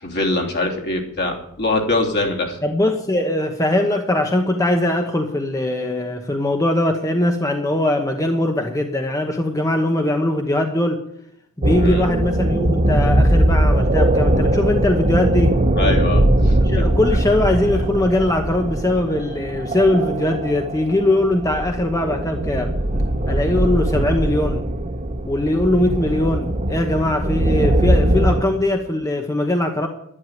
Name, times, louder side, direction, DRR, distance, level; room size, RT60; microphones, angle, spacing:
voice 1, 0.0-2.6 11.8-12.0 15.8-16.9 17.7-17.9, left 2 dB, 50° left, 1 dB, 3.0 m, -23 dB
voice 2, 2.6-11.0 11.6-15.6 16.6-22.7 23.3-24.7 25.3-29.9, left 1 dB, 15° left, 4 dB, 1.0 m, -21 dB
sound 1, 11.6-28.4, right 1 dB, 35° right, 1.1 m, -20 dB
11.5 x 11.0 x 9.1 m, 0.79 s
head